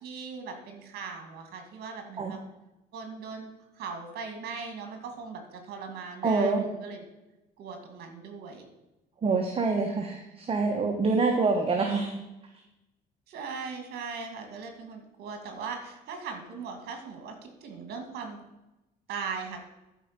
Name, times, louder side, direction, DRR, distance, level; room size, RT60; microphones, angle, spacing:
voice 1, 0.0-2.4 2.9-3.5 3.7-7.0 7.6-8.6 13.3-18.4 19.1-19.6, right 5 dB, 70° right, 5 dB, 2.4 m, -39 dB
voice 2, 6.2-6.6 9.2-12.1, right 4 dB, 35° right, 3 dB, 1.3 m, -26 dB
12.0 x 5.1 x 6.8 m, 0.97 s
cardioid pair, 110°, 17 cm